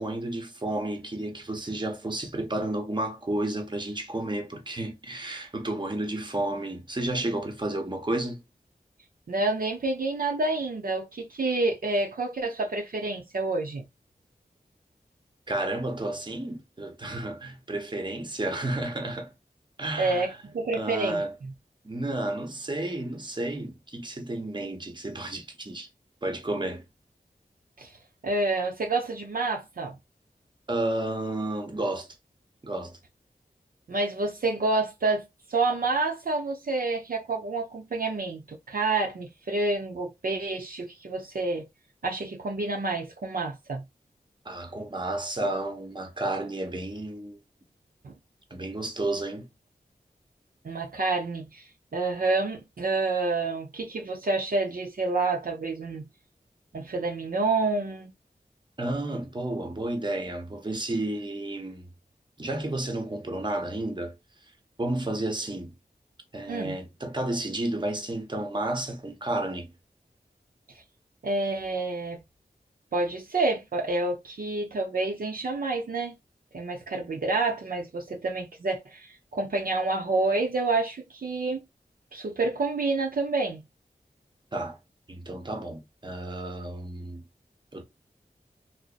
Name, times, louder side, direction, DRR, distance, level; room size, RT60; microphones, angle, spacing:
voice 1, 0.0-8.4 15.5-19.3 19.8-20.4 20.7-21.3 21.8-25.9 26.2-26.8 30.7-32.1 32.6-33.0 44.4-47.4 48.5-49.5 58.8-61.9 62.4-64.1 64.8-65.7 66.3-69.7 84.5-84.8 85.1-87.2 87.7-87.8, right 1 dB, 30° right, 0.8 m, -31 dB
voice 2, 9.3-13.9 20.0-21.5 27.8-27.9 28.2-30.0 33.9-41.6 42.0-43.8 48.0-48.1 50.6-56.0 56.7-58.1 66.5-66.8 71.2-72.2 72.9-76.2 76.5-81.6 82.1-83.6, right 3 dB, 60° right, 0.6 m, -28 dB
2.7 x 2.0 x 2.3 m
cardioid pair, 40°, 16 cm